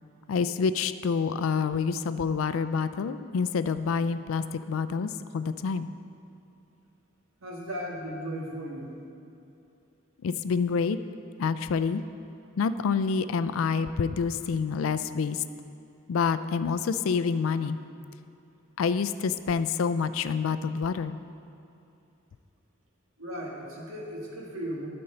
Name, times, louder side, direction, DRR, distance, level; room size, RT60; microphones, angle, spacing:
voice 1, 0.3-5.9 10.2-11.0 11.4-12.0 12.6-15.4 16.1-17.8 18.8-21.2, left 5 dB, 85° left, 13 dB, 0.4 m, -27 dB
voice 2, 7.4-8.9 23.2-24.9, equal, 85° right, -2 dB, 1.6 m, -36 dB
12.5 x 4.4 x 5.4 m, 2.7 s
head